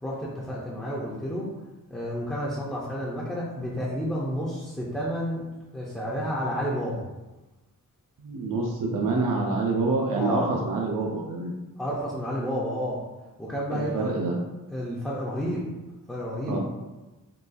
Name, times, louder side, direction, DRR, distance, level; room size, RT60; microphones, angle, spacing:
voice 1, 0.0-1.5 1.9-5.4 5.7-7.0 10.2-10.5 11.8-13.0 13.4-14.1 14.7-15.6 16.1-16.6, equal, ahead, -7 dB, 0.4 m, -30 dB
voice 2, 8.2-11.5 13.7-14.4 16.5-16.6, right 3 dB, 70° right, -1 dB, 0.5 m, -27 dB
3.9 x 2.3 x 2.4 m, 1.1 s
wide cardioid pair, 170°, 35 cm